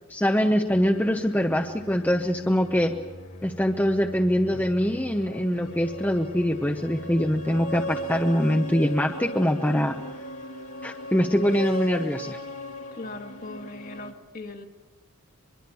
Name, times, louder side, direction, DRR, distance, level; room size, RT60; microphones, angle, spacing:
voice 1, 0.1-2.9 3.4-10.0 10.8-12.4, equal, 10° left, 3 dB, 0.8 m, -23 dB
sound 1, 0.7-14.1, left 1 dB, 75° left, 2.1 m, -38 dB
voice 2, 12.9-14.6, left 2 dB, 40° left, 5 dB, 1.7 m, -39 dB
23.5 x 23.0 x 7.0 m, 1.2 s
head